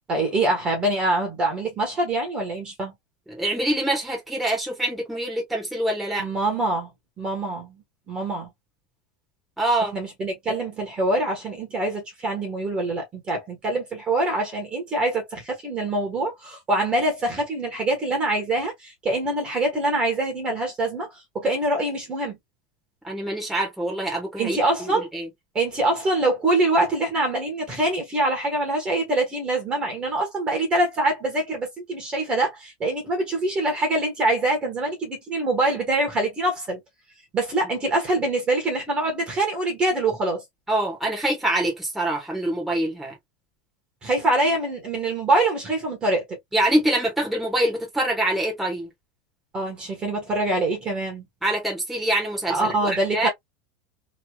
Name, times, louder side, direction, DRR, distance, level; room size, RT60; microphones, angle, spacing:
voice 1, 0.1-2.9 6.2-6.9 7.2-7.8 8.1-8.5 9.9-21.1 21.3-22.4 24.4-25.1 25.5-36.8 37.3-40.4 44.0-46.2 49.5-51.3 52.5-53.3, right 2 dB, 20° right, 1.3 m, -24 dB
voice 2, 3.3-6.3 9.6-9.9 23.0-24.6 24.9-25.3 40.7-43.1 46.5-48.9 51.4-53.3, right 1 dB, ahead, 1.3 m, -25 dB
3.1 x 2.7 x 2.3 m
supercardioid pair, 155°, 5 cm